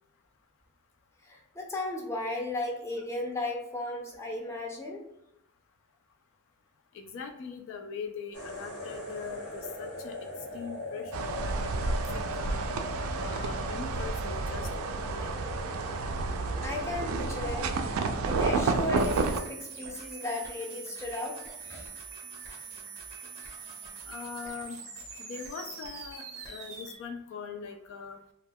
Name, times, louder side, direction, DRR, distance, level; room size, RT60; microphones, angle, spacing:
voice 1, 1.3-5.1 16.6-17.7 18.2-21.4 21.6-21.9 22.5-22.6, left 2 dB, 15° left, -1 dB, 0.5 m, -35 dB
voice 2, 6.9-10.1 10.5-12.0 12.4-15.4 24.1-24.8 25.2-28.2, left 5 dB, 60° left, 4 dB, 0.3 m, -42 dB
sound 1, 8.3-19.5, left 1 dB, 80° left, 0.9 m, -40 dB
sound 2, 11.1-19.4, right 4 dB, 65° right, 0.3 m, -30 dB
sound 3, 19.0-27.0, right 5 dB, 30° right, 0.7 m, -44 dB
2.3 x 2.2 x 3.4 m, 0.80 s
head